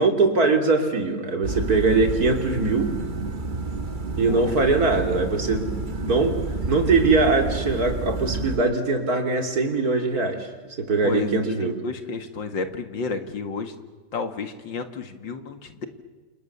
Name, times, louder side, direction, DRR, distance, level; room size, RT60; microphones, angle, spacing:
voice 1, 0.0-2.9 4.2-6.3 6.7-10.5 10.8-11.7, right 3 dB, 50° right, 4 dB, 3.6 m, -22 dB
sound 1, 1.4-8.6, right 3 dB, 30° right, 1.4 m, -30 dB
voice 2, 11.6-13.7 14.1-15.9, left 4 dB, 80° left, 7 dB, 2.6 m, -31 dB
29.0 x 28.5 x 7.0 m, 1.4 s
omnidirectional pair, 2.0 m